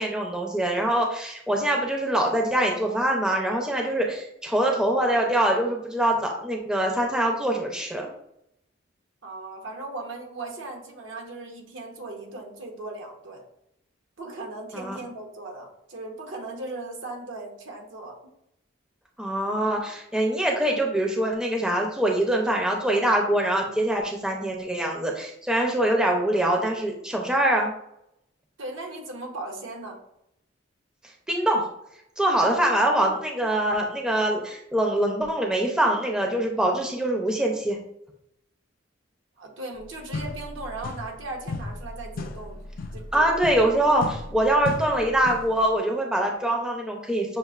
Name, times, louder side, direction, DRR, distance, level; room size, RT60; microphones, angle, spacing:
voice 1, 0.0-8.1 14.7-15.0 19.2-27.7 31.3-31.6 32.2-37.8 43.1-47.4, right 1 dB, 5° right, 0 dB, 0.5 m, -24 dB
voice 2, 9.2-13.4 14.2-18.2 28.6-30.0 39.4-42.6 42.9-43.4, right 2 dB, 75° right, 1 dB, 0.9 m, -37 dB
sound 1, 39.7-39.8 40.1-41.2 41.5-45.6, left 3 dB, 45° left, 0.3 m, -35 dB
6.4 x 2.5 x 2.4 m, 0.78 s
head